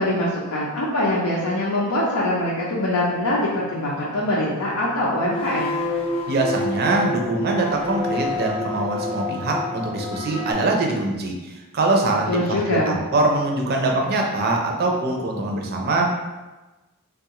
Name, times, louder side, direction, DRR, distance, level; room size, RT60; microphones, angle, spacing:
voice 1, 0.0-5.7 12.3-13.0, left 1 dB, 75° left, -6 dB, 0.5 m, -23 dB
sound 1, 3.4-10.5, left 2 dB, 25° left, 0.5 m, -29 dB
voice 2, 6.3-16.1, right 2 dB, 45° right, 1 dB, 0.5 m, -23 dB
3.4 x 2.3 x 2.9 m, 1.1 s
head